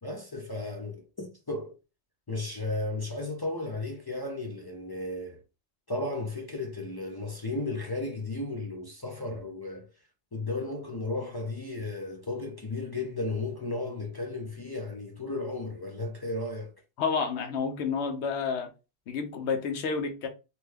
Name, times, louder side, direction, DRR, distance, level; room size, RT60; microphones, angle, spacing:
voice 1, 0.0-1.8 2.3-5.4 5.9-9.9 10.3-16.7, left 2 dB, 40° left, 0.3 m, -34 dB
voice 2, 17.0-18.7 19.1-20.3, left 5 dB, 85° left, 1.0 m, -30 dB
2.9 x 2.2 x 3.3 m
omnidirectional pair, 1.1 m